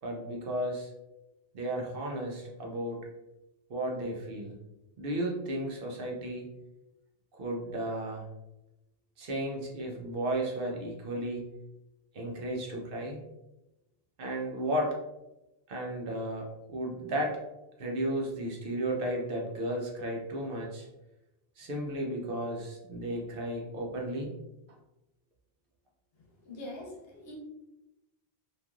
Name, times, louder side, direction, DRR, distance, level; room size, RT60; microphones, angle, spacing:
voice 1, 0.0-0.9 1.5-3.0 3.7-4.6 5.0-6.5 7.3-8.3 9.2-11.5 12.1-13.2 14.2-14.9 15.7-17.4 17.8-20.9 21.6-24.3, right 1 dB, 65° right, 0 dB, 0.8 m, -34 dB
voice 2, 26.4-27.4, left 1 dB, 70° left, -1 dB, 1.0 m, -43 dB
3.2 x 2.4 x 2.3 m, 0.95 s
omnidirectional pair, 1.0 m